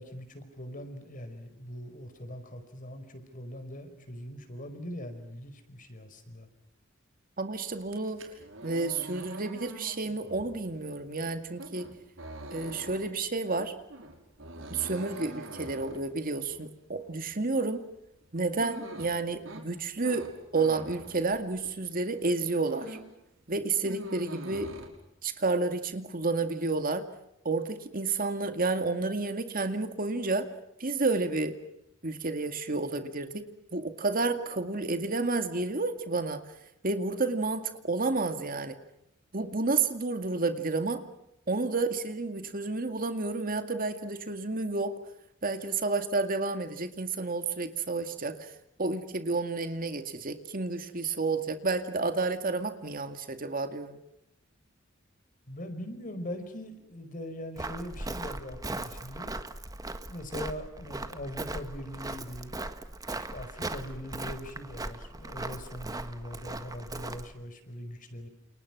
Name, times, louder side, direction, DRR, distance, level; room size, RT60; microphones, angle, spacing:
voice 1, 0.0-6.5 55.5-59.3 60.1-62.5 63.1-68.3, left 1 dB, 45° left, 8 dB, 5.1 m, -41 dB
voice 2, 7.4-8.2 8.6-11.9 12.5-13.7 14.7-17.8 18.3-20.3 20.5-23.0 23.5-24.7 25.2-27.0 27.4-30.4 30.8-31.6 32.0-33.5 33.7-36.4 36.8-38.8 39.3-41.0 41.5-44.9 45.4-48.5 48.8-54.0, right 3 dB, 45° right, 8 dB, 2.2 m, -30 dB
sound 1, 7.8-21.9 22.2-23.2 23.5-24.9, right 2 dB, 85° right, 5.7 m, -45 dB
Walk footsteps, 57.6-67.3, right 2 dB, 20° right, 1.6 m, -38 dB
29.5 x 29.0 x 6.1 m, 0.85 s
head